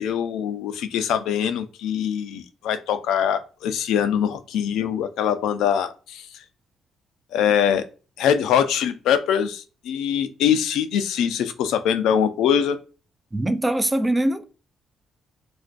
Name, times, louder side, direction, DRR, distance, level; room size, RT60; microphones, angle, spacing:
voice 1, 0.0-6.4 7.3-7.8 8.2-12.8, left 8 dB, 85° left, 0.3 m, -23 dB
voice 2, 13.3-14.4, right 1 dB, 15° right, 0.3 m, -22 dB
2.4 x 2.2 x 2.4 m
cardioid pair, 90°, 0 cm